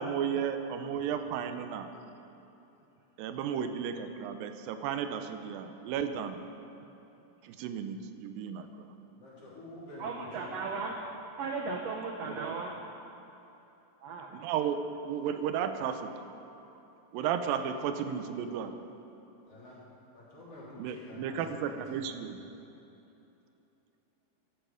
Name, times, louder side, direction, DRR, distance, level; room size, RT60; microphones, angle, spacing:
voice 1, 0.0-1.9 3.2-6.5 7.4-8.9 12.2-12.6 14.3-16.1 17.1-18.7 20.8-22.4, right 8 dB, 85° right, 8 dB, 2.5 m, -34 dB
voice 2, 9.2-10.5 19.5-19.8 20.1-22.1, left 1 dB, 45° left, -7 dB, 4.3 m, -48 dB
voice 3, 10.0-10.9 11.3-12.8 14.0-14.3, right 4 dB, 70° right, 1 dB, 1.6 m, -36 dB
15.0 x 12.0 x 5.0 m, 3.0 s
omnidirectional pair, 4.0 m